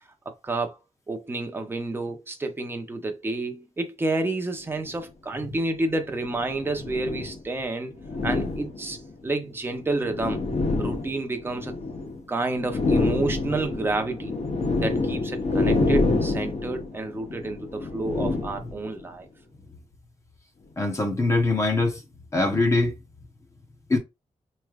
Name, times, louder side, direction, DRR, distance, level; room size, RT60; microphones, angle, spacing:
voice 1, 0.3-0.8 1.1-8.0 8.2-10.4 10.8-11.8 12.3-14.4 14.8-19.3, right 2 dB, 20° right, 0.7 m, -30 dB
sound 1, 4.7-4.9 5.9-7.4 8.0-9.1 9.8-12.2 12.5-19.1, left 3 dB, 60° left, 0.9 m, -27 dB
voice 2, 20.8-22.0 22.3-22.9 23.9-24.0, left 2 dB, 25° left, 0.8 m, -22 dB
4.4 x 3.2 x 2.4 m
wide cardioid pair, 160°, 12 cm